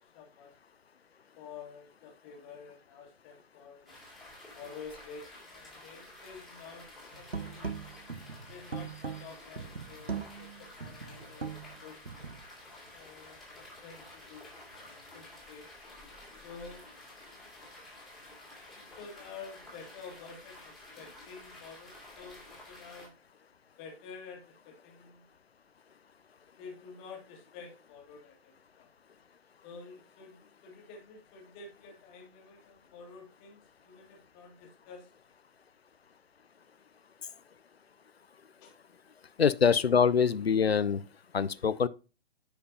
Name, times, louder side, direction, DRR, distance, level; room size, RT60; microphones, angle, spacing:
voice 1, 0.1-0.5 1.3-3.9 4.5-7.8 8.4-12.0 12.9-14.6 14.8-15.7 16.4-16.8 17.9-18.4 18.7-23.1 23.8-25.2 26.5-28.9 29.6-35.1 38.6-38.7, left 5 dB, 25° left, 1.8 m, -50 dB
Little Waterfall, 3.8-23.1, left 1 dB, ahead, 2.4 m, -51 dB
sound 1, 7.1-12.5, right 5 dB, 85° right, 0.9 m, -40 dB
voice 2, 39.4-41.0 41.3-41.9, left 6 dB, 80° left, 0.6 m, -24 dB
10.0 x 5.1 x 2.7 m
figure-of-eight pair, 130°, 30 cm